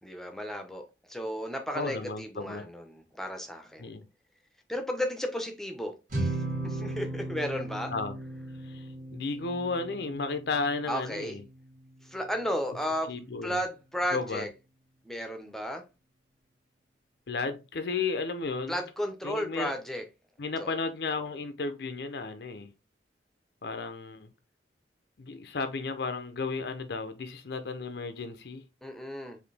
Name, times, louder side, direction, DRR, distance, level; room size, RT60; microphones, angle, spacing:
voice 1, 0.0-3.9 4.7-6.3 6.6-7.9 10.9-11.4 12.0-13.1 13.4-14.5 15.1-15.8 18.7-20.0 20.6-20.8 28.8-29.4, equal, ahead, 0.7 m, -34 dB
voice 2, 1.7-2.7 3.8-4.1 7.9-8.2 8.6-11.4 13.1-13.6 14.1-14.5 17.3-18.8 19.2-19.7 20.4-22.7 23.6-24.3 25.2-28.6, left 4 dB, 60° left, 0.6 m, -33 dB
sound 1, 6.1-12.5, right 2 dB, 45° right, 2.0 m, -37 dB
4.9 x 2.7 x 3.2 m
head